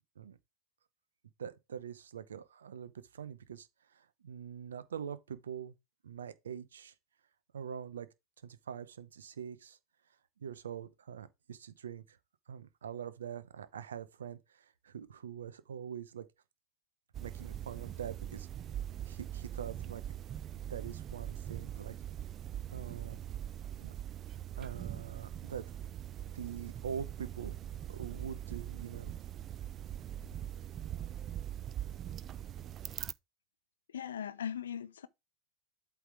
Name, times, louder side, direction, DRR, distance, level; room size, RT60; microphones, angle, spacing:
voice 1, 1.4-3.7 3.9-5.8 6.0-6.9 7.5-8.1 8.4-9.8 10.4-12.2 12.5-16.3 17.2-18.5 19.1-20.0 20.7-21.9 22.7-23.2 23.8-23.9 24.6-25.7 26.3-27.6 27.9-29.1, right 8 dB, 90° right, 0.8 m, -44 dB
sound 1, 17.1-33.1, right 11 dB, 35° right, 0.4 m, -42 dB
voice 2, 33.9-35.1, left 8 dB, 85° left, 0.6 m, -39 dB
8.1 x 3.5 x 4.7 m
hypercardioid pair, 100°, 0 cm